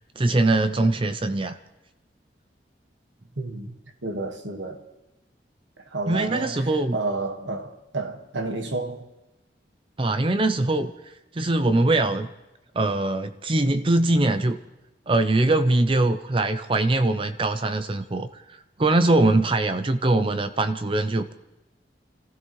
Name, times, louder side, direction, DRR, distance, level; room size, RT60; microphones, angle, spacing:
voice 1, 0.2-1.6 6.1-7.0 10.0-12.3 12.7-14.6 15.1-21.3, right 2 dB, 30° right, 0.5 m, -22 dB
voice 2, 3.4-3.7 4.0-4.8 5.9-6.6 6.9-9.0, right 2 dB, 85° right, 1.7 m, -30 dB
27.5 x 15.5 x 3.2 m
head